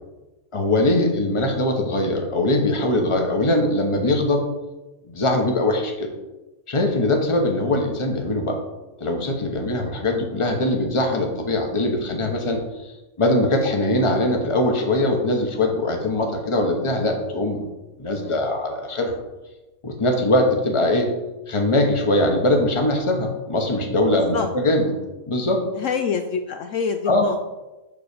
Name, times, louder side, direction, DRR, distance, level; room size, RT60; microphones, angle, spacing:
voice 1, 0.5-4.4 5.1-6.1 6.7-8.6 9.0-17.6 18.0-19.1 19.8-21.1 21.5-24.9 25.3-25.6 27.1-27.3, left 1 dB, 20° left, 2 dB, 1.1 m, -21 dB
voice 2, 24.1-24.5 25.7-27.4, left 6 dB, 70° left, 6 dB, 0.8 m, -27 dB
7.4 x 4.1 x 6.7 m, 1.1 s
omnidirectional pair, 1.6 m